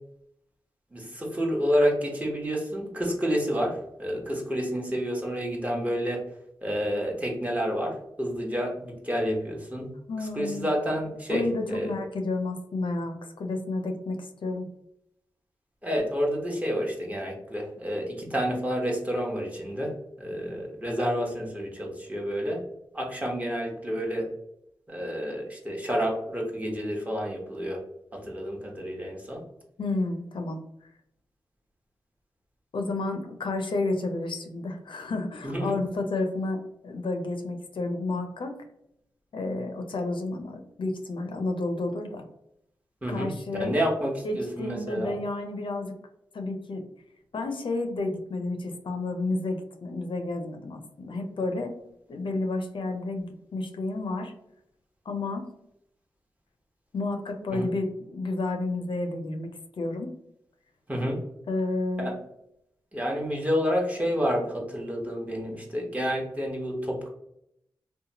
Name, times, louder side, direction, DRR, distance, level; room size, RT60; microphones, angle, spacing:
voice 1, 0.9-6.2 6.6-9.9 10.2-11.4 11.7-11.9 15.8-19.9 20.2-22.6 22.9-24.3 24.9-27.8 28.1-29.4 35.4-35.8 43.0-43.3 43.6-45.2 57.5-57.7 60.9-61.2 62.0-62.1 62.9-67.1, equal, 15° right, -1 dB, 0.9 m, -29 dB
voice 2, 10.1-10.7 11.3-14.7 29.8-30.6 32.7-38.6 39.3-42.2 43.1-43.7 44.2-45.9 46.3-46.8 47.3-51.8 52.1-54.3 55.1-55.5 56.9-59.5 59.8-60.1 61.5-62.1, left 2 dB, 70° left, 4 dB, 0.4 m, -31 dB
2.8 x 2.2 x 2.7 m, 0.76 s
cardioid pair, 55°, 9 cm